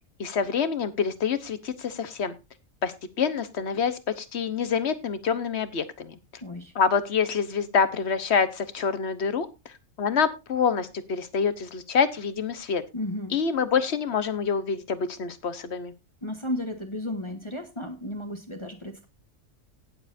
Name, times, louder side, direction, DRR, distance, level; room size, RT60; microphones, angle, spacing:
voice 1, 0.2-2.3 2.8-6.1 6.7-9.5 10.0-12.8 13.3-15.9, left 6 dB, 55° left, 12 dB, 1.3 m, -26 dB
voice 2, 6.4-6.7 12.9-13.4 16.2-19.1, left 1 dB, 20° left, 4 dB, 1.2 m, -33 dB
18.5 x 7.3 x 2.6 m, 0.26 s
omnidirectional pair, 1.4 m